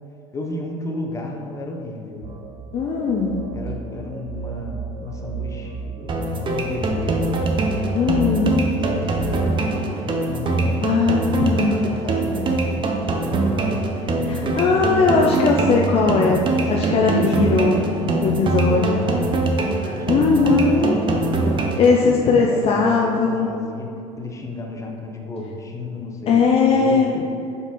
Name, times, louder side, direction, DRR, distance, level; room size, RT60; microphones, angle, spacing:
voice 1, 0.3-2.3 3.5-7.3 8.6-10.9 11.8-14.9 16.2-19.5 19.9-21.7 22.0-23.9 24.2-27.2, left 2 dB, 20° left, 1 dB, 0.9 m, -33 dB
sound 1, 2.2-9.6, right 6 dB, 75° right, 0.6 m, -34 dB
voice 2, 2.7-3.3 7.9-8.7 10.8-11.8 14.2-16.4 16.7-17.8 18.2-19.0 19.8-21.0 21.8-23.5 26.3-27.2, left 4 dB, 40° left, 0 dB, 0.6 m, -19 dB
sound 2, 6.1-22.1, right 2 dB, 35° right, 0.8 m, -23 dB
4.8 x 4.0 x 5.3 m, 2.6 s
supercardioid pair, 90°, 15 cm